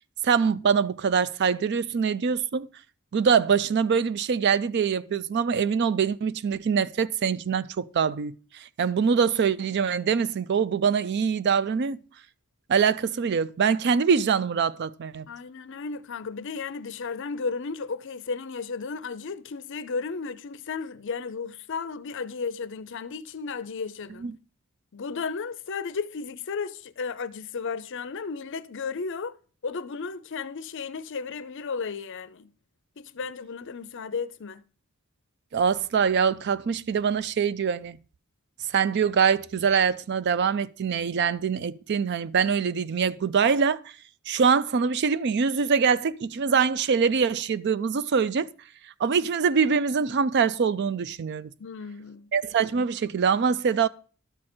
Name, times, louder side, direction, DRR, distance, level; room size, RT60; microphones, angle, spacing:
voice 1, 0.2-2.7 3.1-8.3 8.8-12.0 12.7-15.3 24.2-24.4 35.5-38.0 38.7-43.8 44.3-48.5 49.0-51.5 52.3-53.9, right 6 dB, 50° right, 0.4 m, -24 dB
voice 2, 15.3-24.3 24.9-29.3 29.6-32.5 33.0-34.6 51.6-52.3, left 5 dB, 60° left, 0.5 m, -34 dB
12.0 x 6.3 x 4.4 m
head